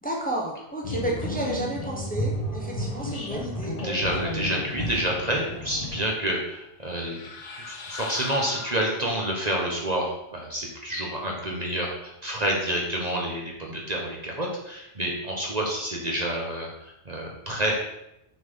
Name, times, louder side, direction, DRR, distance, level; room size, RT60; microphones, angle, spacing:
voice 1, 0.0-3.8, right 1 dB, 5° left, -2 dB, 1.2 m, -31 dB
sound 1, 0.8-6.0, left 1 dB, 35° left, 1.1 m, -32 dB
voice 2, 3.8-7.3 7.7-17.7, right 1 dB, 35° right, -1 dB, 1.2 m, -29 dB
sound 2, 6.8-9.5, left 4 dB, 85° left, 1.3 m, -39 dB
6.2 x 4.1 x 5.5 m, 0.85 s
omnidirectional pair, 1.2 m